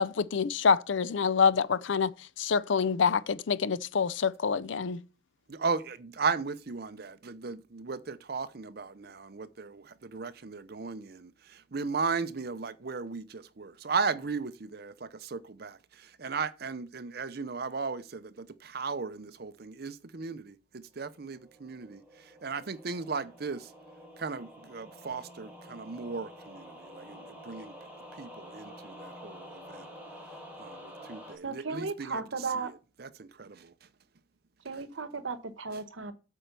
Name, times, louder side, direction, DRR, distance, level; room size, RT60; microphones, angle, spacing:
voice 1, 0.0-2.1 2.4-5.0, left 6 dB, 70° left, 0.5 m, -26 dB
voice 2, 5.5-11.3 11.7-15.8 16.2-22.0 22.4-23.7 24.2-27.7 28.2-29.9 30.6-32.2 33.0-33.7, right 4 dB, 50° right, 0.7 m, -36 dB
sound 1, 21.1-31.4, equal, 10° right, 2.4 m, -48 dB
voice 3, 31.4-32.7 34.6-36.1, right 4 dB, 80° right, 1.1 m, -35 dB
8.5 x 4.5 x 6.7 m
head